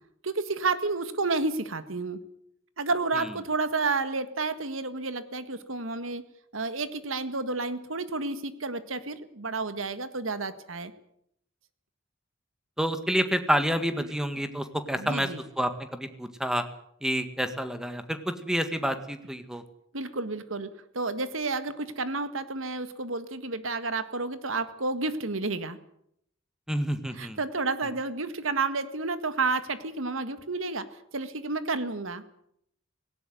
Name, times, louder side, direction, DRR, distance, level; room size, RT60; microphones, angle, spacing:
voice 1, 0.2-2.2 2.8-6.2 6.5-10.9 14.0-14.2 15.0-15.4 19.9-25.8 27.1-32.2, right 3 dB, 85° right, 12 dB, 1.7 m, -31 dB
voice 2, 12.8-15.3 15.6-15.7 16.2-16.6 17.0-19.6 26.7-27.4, equal, 5° right, 9 dB, 1.7 m, -28 dB
18.0 x 17.5 x 9.4 m, 0.72 s
head